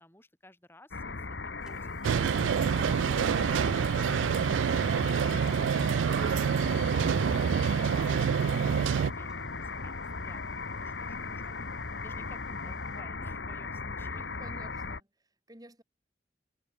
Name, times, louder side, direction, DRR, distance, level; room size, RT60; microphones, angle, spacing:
voice 1, 0.0-6.5 6.8-11.6 11.9-14.3, left 1 dB, 10° left, 5.0 m, -57 dB
sound 1, 0.9-15.0, left 4 dB, 70° left, 1.5 m, -37 dB
sound 2, 1.6-13.0, equal, 5° right, 1.7 m, -58 dB
sound 3, 2.0-9.1, right 7 dB, 85° right, 0.3 m, -27 dB
voice 2, 14.1-15.1 15.5-15.8, right 1 dB, 20° right, 2.5 m, -51 dB
open air
head